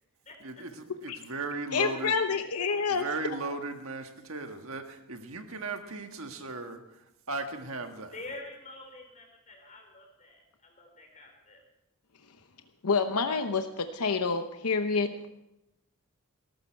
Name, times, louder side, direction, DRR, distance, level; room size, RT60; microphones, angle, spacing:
voice 1, 0.4-2.2 2.9-8.1, right 3 dB, 65° right, 6 dB, 1.6 m, -37 dB
voice 2, 1.7-3.0 12.8-15.3, left 5 dB, 90° left, 7 dB, 0.8 m, -28 dB
voice 3, 8.1-11.6, left 2 dB, 35° left, 2 dB, 4.2 m, -46 dB
20.0 x 12.5 x 4.6 m, 0.88 s
head